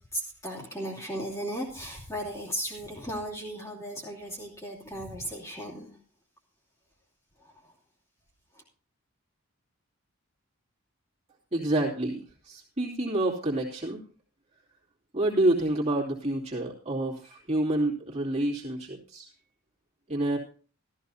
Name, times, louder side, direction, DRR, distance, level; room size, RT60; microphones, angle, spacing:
voice 1, 0.1-5.9 7.4-7.7 8.5-8.6, equal, 15° left, -3 dB, 2.6 m, -36 dB
voice 2, 11.5-12.2 12.5-14.0 15.1-19.3 20.1-20.4, right 1 dB, 30° right, -4 dB, 2.8 m, -28 dB
14.0 x 14.0 x 2.8 m, 0.40 s
head